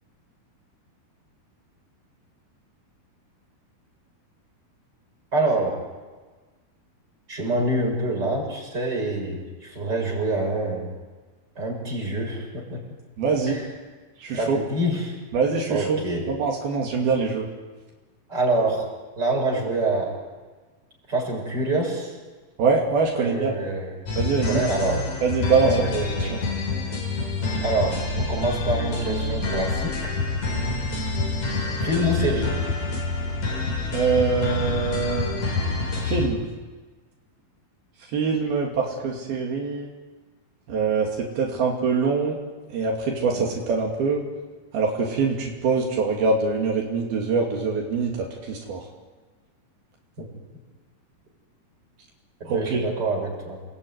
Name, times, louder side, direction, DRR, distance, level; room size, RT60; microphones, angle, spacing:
voice 1, 5.3-5.8 7.3-10.9 11.6-12.8 13.5-13.7 14.3-15.2 15.7-16.3 18.3-18.8 19.2-20.2 21.1-22.1 23.2-23.9 24.5-25.0 25.6-26.6 27.6-30.2 31.5-32.6 43.3-43.4 50.2-50.3 52.4-53.6, right 2 dB, 25° right, -1 dB, 7.1 m, -26 dB
voice 2, 13.2-13.6 14.2-14.6 15.3-16.0 16.3-17.5 22.6-23.5 24.2-24.6 25.2-25.9 26.2-26.4 33.9-35.5 36.0-36.5 38.1-39.9 40.7-42.4 42.7-44.2 44.7-48.8 52.5-52.8, right 4 dB, 80° right, 0 dB, 4.5 m, -24 dB
sound 1, 24.1-36.3, left 3 dB, 50° left, 5.3 m, -27 dB
29.0 x 20.0 x 9.5 m, 1.3 s
omnidirectional pair, 4.3 m